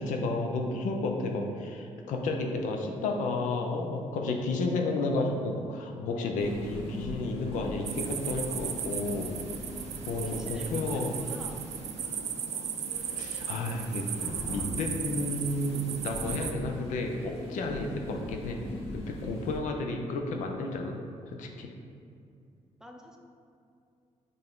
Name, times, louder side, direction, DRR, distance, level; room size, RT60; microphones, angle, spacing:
voice 1, 0.0-9.3 10.1-11.1 13.1-14.1 14.5-18.7 18.9-21.0 21.3-21.7, left 2 dB, 85° left, 2 dB, 0.5 m, -32 dB
sound 1, 6.4-12.4 12.9-19.6, left 1 dB, 50° left, 1.2 m, -42 dB
sound 2, 7.8-16.5, right 8 dB, 65° right, 0.4 m, -36 dB
voice 2, 10.2-11.7 22.8-23.2, equal, 5° right, 1 dB, 0.5 m, -47 dB
5.5 x 2.6 x 3.5 m, 2.4 s
cardioid pair, 80°, 13 cm